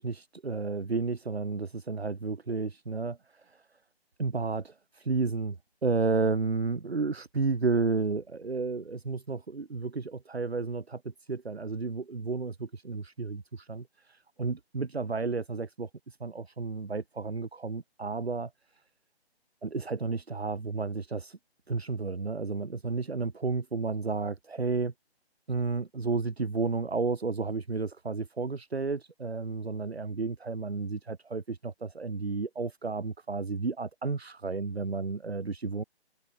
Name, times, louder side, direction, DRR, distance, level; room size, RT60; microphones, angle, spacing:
voice 1, 0.0-3.6 4.2-5.6 5.8-18.5 19.6-21.4 21.7-24.9 25.5-35.8, right 4 dB, 70° right, 1.4 m, -32 dB
figure-of-eight pair, 145°, 32 cm